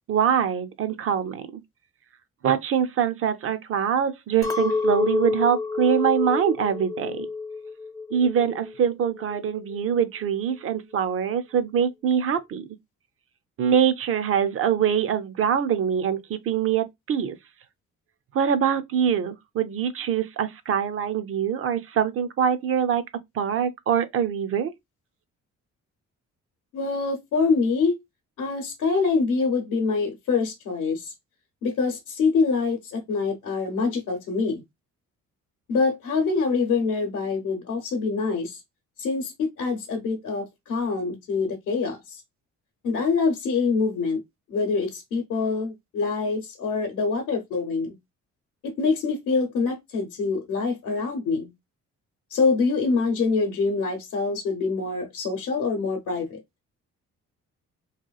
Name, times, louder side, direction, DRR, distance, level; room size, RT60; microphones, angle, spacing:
voice 1, 0.1-1.6 2.4-7.3 8.1-12.6 13.6-17.4 18.3-23.0 23.3-24.7, right 8 dB, 50° right, 0.4 m, -24 dB
Chink clink, 4.4-8.8 9.2-9.8, left 4 dB, 10° left, 0.4 m, -28 dB
voice 2, 26.7-28.0 28.4-31.1 31.6-34.6 35.7-38.6 39.0-42.2 42.8-44.2 44.5-47.9 48.6-51.5 52.3-56.4, left 4 dB, 80° left, 0.8 m, -25 dB
2.8 x 2.3 x 2.2 m
cardioid pair, 90°, 30 cm